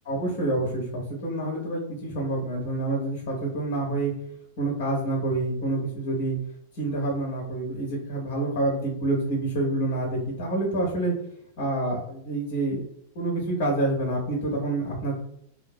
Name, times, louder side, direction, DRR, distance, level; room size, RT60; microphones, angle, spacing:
voice 1, 0.0-4.1 4.6-6.4 6.8-11.1 11.6-12.8 13.1-15.1, right 2 dB, 45° left, -1 dB, 0.6 m, -27 dB
2.6 x 2.2 x 2.2 m, 0.72 s
figure-of-eight pair, 90°, 0 cm